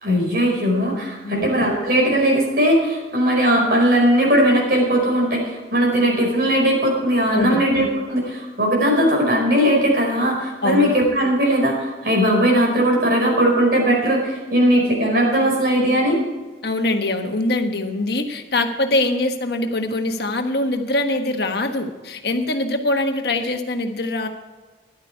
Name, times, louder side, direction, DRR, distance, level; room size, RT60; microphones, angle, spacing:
voice 1, 0.0-16.2, equal, 55° right, -1 dB, 5.1 m, -18 dB
voice 2, 1.2-1.5 7.3-7.6 10.6-10.9 16.6-24.3, left 2 dB, 65° left, 5 dB, 1.3 m, -23 dB
14.0 x 11.0 x 4.6 m, 1.2 s
head